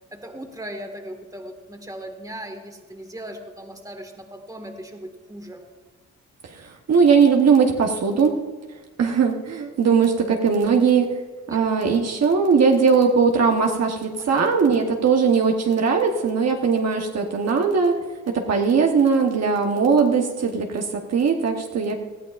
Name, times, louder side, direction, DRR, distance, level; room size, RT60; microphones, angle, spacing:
voice 1, 0.1-5.6 11.5-11.6 14.2-14.5, right 1 dB, 10° right, 4 dB, 1.8 m, -38 dB
voice 2, 6.6-8.4 9.0-11.2 11.5-18.0 18.3-22.0, right 5 dB, 55° right, 1 dB, 1.2 m, -19 dB
19.0 x 13.5 x 2.5 m, 1.3 s
cardioid pair, 80°, 31 cm